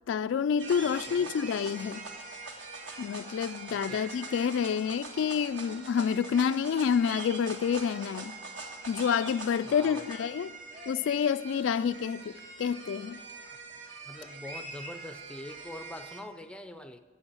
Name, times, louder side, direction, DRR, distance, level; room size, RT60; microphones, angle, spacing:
voice 1, 0.1-2.0 3.0-8.4 8.9-10.5 10.9-13.2, left 7 dB, 80° left, 0.3 m, -28 dB
sound 1, 0.6-16.2, right 3 dB, 65° right, 1.5 m, -43 dB
voice 2, 0.9-1.3 3.7-4.1 9.6-10.1 14.1-17.0, left 1 dB, 5° left, 0.4 m, -44 dB
8.0 x 7.7 x 8.3 m
head